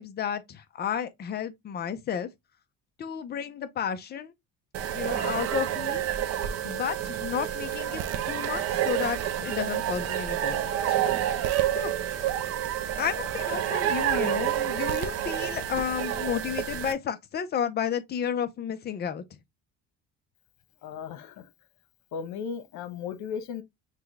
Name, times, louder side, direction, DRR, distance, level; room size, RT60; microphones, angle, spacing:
voice 1, 0.0-2.3 3.0-4.3 4.9-6.0 6.6-10.7 11.7-11.9 13.0-19.2, left 8 dB, 35° left, 0.6 m, -32 dB
sound 1, 4.7-16.9, right 11 dB, 55° right, 0.6 m, -29 dB
voice 2, 20.8-21.5 22.1-23.6, left 7 dB, 85° left, 1.1 m, -36 dB
5.9 x 2.2 x 3.2 m
cardioid pair, 150°, 29 cm